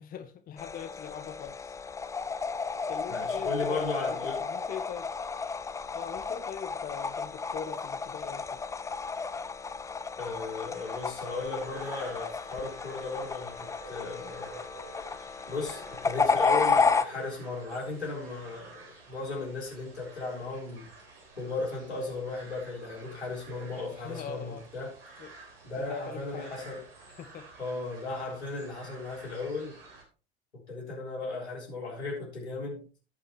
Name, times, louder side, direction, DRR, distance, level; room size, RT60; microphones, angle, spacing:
voice 1, 0.0-1.7 2.9-5.1 5.9-8.6 24.0-24.6 25.2-25.3 25.8-26.7 27.2-27.5, left 8 dB, 25° left, 0.9 m, -41 dB
sound 1, 0.6-17.0, left 5 dB, 10° left, 0.5 m, -32 dB
voice 2, 3.1-4.4 10.2-14.6 15.5-20.9 21.4-25.0 25.6-26.8 27.6-29.8 30.7-32.8, left 3 dB, 80° left, 3.8 m, -36 dB
sound 2, 10.7-30.0, right 3 dB, 60° right, 3.5 m, -50 dB
17.0 x 5.6 x 3.1 m
figure-of-eight pair, 75°, 32 cm